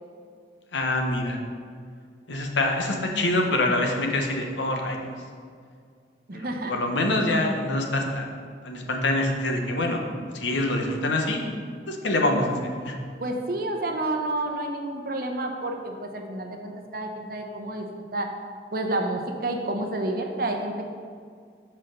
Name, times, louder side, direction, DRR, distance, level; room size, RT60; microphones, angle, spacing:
voice 1, 0.7-1.4 2.3-5.0 6.3-8.3 8.6-10.0 10.3-11.4 11.9-12.6 12.8-13.0, left 2 dB, 80° left, 2 dB, 0.9 m, -25 dB
voice 2, 6.3-6.8 13.2-17.8 18.1-18.3 18.7-20.9, right 2 dB, 50° right, 3 dB, 0.7 m, -29 dB
5.9 x 4.4 x 6.4 m, 2.1 s
head